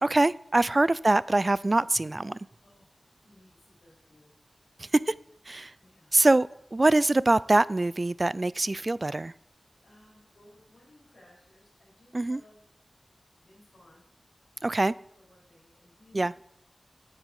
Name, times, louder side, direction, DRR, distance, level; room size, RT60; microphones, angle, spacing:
voice 1, 0.0-2.4 4.8-5.1 5.5-5.7 6.1-9.3 12.1-12.4 14.6-14.9 16.1-16.3, right 2 dB, 35° right, 20 dB, 0.3 m, -24 dB
voice 2, 2.6-3.0 3.2-4.4 5.8-6.2 9.8-12.6 13.4-14.0 15.2-16.3, left 1 dB, 75° left, -8 dB, 4.7 m, -59 dB
9.0 x 8.9 x 4.8 m, 0.74 s
wide cardioid pair, 65°, 0 cm